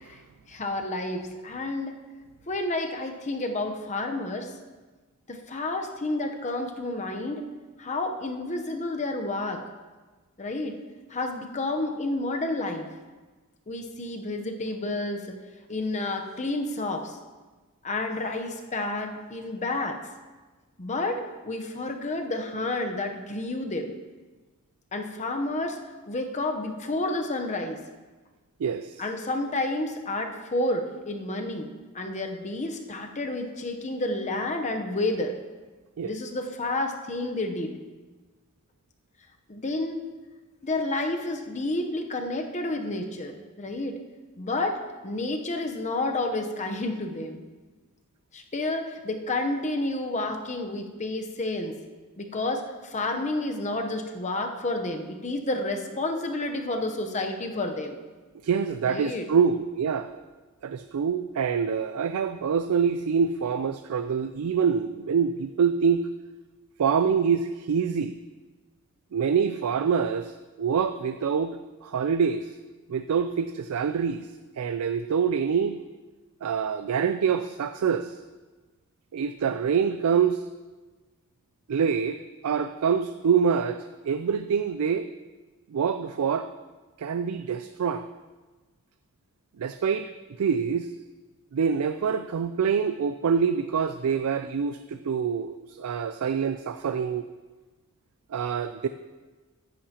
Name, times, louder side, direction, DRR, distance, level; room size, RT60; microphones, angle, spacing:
voice 1, 0.5-1.9 2.5-4.5 5.3-7.5 7.8-9.6 10.4-10.8 11.1-12.9 13.7-15.4 15.7-17.2 17.8-20.0 20.8-23.9 24.9-25.8 26.1-27.8 29.0-31.7 31.9-35.3 36.0-37.7 39.5-40.0 40.6-44.0 44.4-44.8 45.0-47.4 48.3-51.7 52.2-58.0 58.9-59.3, left 2 dB, 35° left, 4 dB, 0.8 m, -30 dB
voice 2, 28.6-29.0 36.0-36.1 58.4-60.2 60.6-66.0 66.8-68.1 69.1-70.3 70.6-72.5 72.9-74.2 74.6-75.8 76.4-78.1 79.1-80.4 81.7-83.8 84.1-85.1 85.7-86.5 87.0-88.0 89.6-90.1 90.4-90.9 91.5-97.3 98.3-98.9, right 6 dB, 85° right, 10 dB, 0.4 m, -25 dB
14.0 x 10.5 x 2.9 m, 1.3 s
head